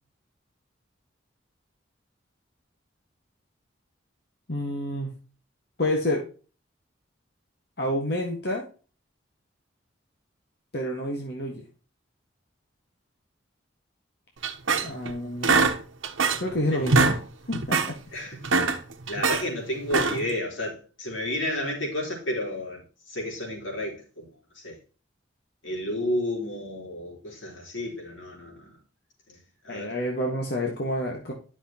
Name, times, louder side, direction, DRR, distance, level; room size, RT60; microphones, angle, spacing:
voice 1, 4.5-5.1 5.8-6.2 7.8-8.6 10.7-11.6 14.8-15.7 16.4-17.1 17.5-18.3 29.7-31.3, left 1 dB, 55° left, 1.6 m, -29 dB
sound 1, 14.4-15.1 15.4-16.5 16.8-17.2 17.5-17.9 18.3-19.4 19.8-20.3, right 4 dB, 90° right, 1.0 m, -23 dB
voice 2, 16.4-17.0 18.1-18.6 19.1-24.3 24.6-24.8 25.6-28.7 29.3-29.4 29.6-29.9, left 1 dB, 85° left, 3.9 m, -32 dB
10.5 x 6.3 x 2.9 m
head